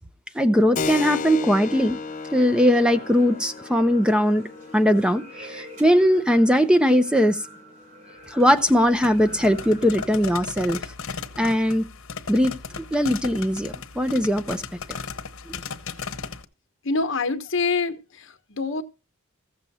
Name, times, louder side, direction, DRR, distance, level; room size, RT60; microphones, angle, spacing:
voice 1, 0.3-2.0 2.3-4.5 4.7-7.4 8.3-10.8 11.4-11.9 12.3-14.6 15.5-15.6, equal, 5° right, 0.6 m, -20 dB
Keyboard (musical), 0.7-9.0, left 5 dB, 40° left, 0.6 m, -36 dB
sound 1, 1.4-10.0, right 1 dB, 40° right, 3.3 m, -47 dB
sound 2, 8.2-16.5, left 5 dB, 85° left, 1.0 m, -36 dB
voice 2, 16.8-18.8, left 3 dB, 65° left, 1.1 m, -26 dB
15.0 x 7.1 x 4.2 m
head